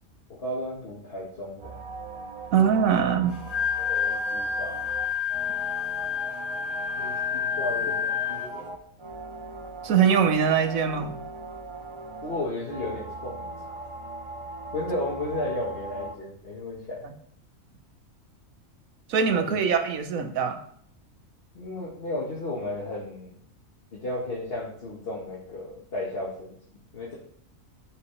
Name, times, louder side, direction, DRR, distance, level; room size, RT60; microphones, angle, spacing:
voice 1, 0.3-1.8 3.7-4.8 7.0-8.7 12.2-13.8 14.7-17.1 19.2-19.6 21.5-23.4 23.9-27.1, left 1 dB, 45° left, -5 dB, 1.7 m, -34 dB
sound 1, 1.6-16.1, right 3 dB, 30° right, 0.7 m, -40 dB
voice 2, 2.5-3.4 9.8-11.1 19.1-20.6, right 7 dB, 80° right, 7 dB, 1.3 m, -22 dB
Wind instrument woodwind instrument, 3.3-8.6, left 7 dB, 65° left, 2.5 m, -29 dB
12.5 x 4.9 x 3.2 m, 0.64 s
omnidirectional pair, 1.4 m